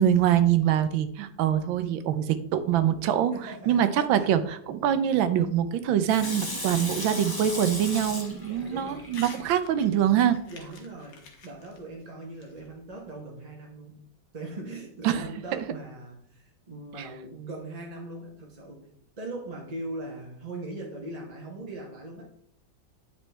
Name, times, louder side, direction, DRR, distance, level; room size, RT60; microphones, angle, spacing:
voice 1, 0.0-3.3 3.7-10.4 15.0-15.3 15.5-15.7, right 10 dB, 80° right, 12 dB, 1.4 m, -24 dB
voice 2, 3.3-3.8 4.1-4.4 8.5-9.1 10.4-14.0 14.3-18.9 19.2-22.3, right 2 dB, 30° right, -1 dB, 0.7 m, -40 dB
Water tap faucet / Sink (filling or washing), 6.1-9.8 10.3-10.4, left 1 dB, 15° left, 0.9 m, -36 dB
Crumpling crinkling / Tearing, 9.1-9.5 9.8-13.1, left 4 dB, 70° left, 1.9 m, -49 dB
8.9 x 5.5 x 3.3 m, 0.67 s
omnidirectional pair, 2.1 m